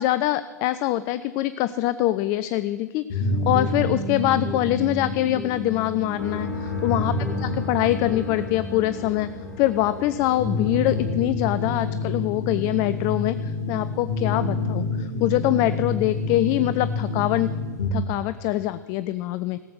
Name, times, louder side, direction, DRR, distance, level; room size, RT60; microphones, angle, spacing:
voice 1, 0.0-9.3 9.6-17.5 17.9-19.6, left 15 dB, 40° left, 14 dB, 0.4 m, -24 dB
sound 1, 3.1-17.9, left 2 dB, 65° left, 2.8 m, -28 dB
sound 2, 6.2-12.1, left 3 dB, 80° left, 2.3 m, -37 dB
17.0 x 7.6 x 6.3 m, 1.4 s
figure-of-eight pair, 95°, 9 cm